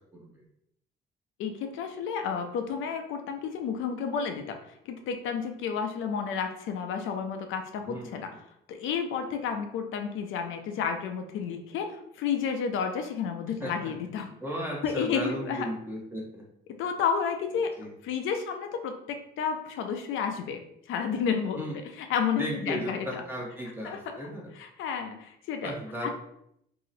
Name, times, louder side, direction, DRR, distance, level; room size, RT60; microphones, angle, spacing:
voice 1, 0.1-0.4 7.8-8.1 13.6-13.9 14.4-16.5 17.8-17.9 21.6-21.7 22.4-24.5 25.6-26.1, equal, 10° right, -3 dB, 0.7 m, -35 dB
voice 2, 1.4-4.6 4.9-8.3 8.7-14.3 14.8-15.7 16.8-17.7 18.0-20.6 20.9-21.6 22.0-23.2 23.8-24.0 24.6-25.7 26.0-26.1, left 6 dB, 85° left, 5 dB, 0.5 m, -31 dB
2.7 x 2.0 x 3.9 m, 0.74 s
cardioid pair, 90°, 20 cm